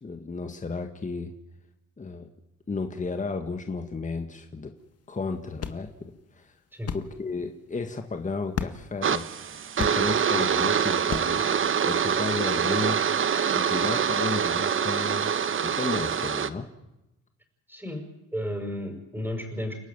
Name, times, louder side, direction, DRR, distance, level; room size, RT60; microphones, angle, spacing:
voice 1, 0.0-1.3 2.0-2.3 2.7-4.7 5.1-6.6 6.9-9.2 9.8-13.0 13.5-15.3 15.6-16.7, left 4 dB, 25° left, 6 dB, 1.7 m, -33 dB
sound 1, 4.8-11.5, left 7 dB, 55° left, 1.7 m, -39 dB
sound 2, 9.0-16.5, right 7 dB, 45° right, 1.1 m, -25 dB
voice 2, 17.7-18.1 18.3-19.7, left 1 dB, 5° right, 2 dB, 5.9 m, -33 dB
29.5 x 12.5 x 9.6 m, 0.93 s
cardioid pair, 90°, 30 cm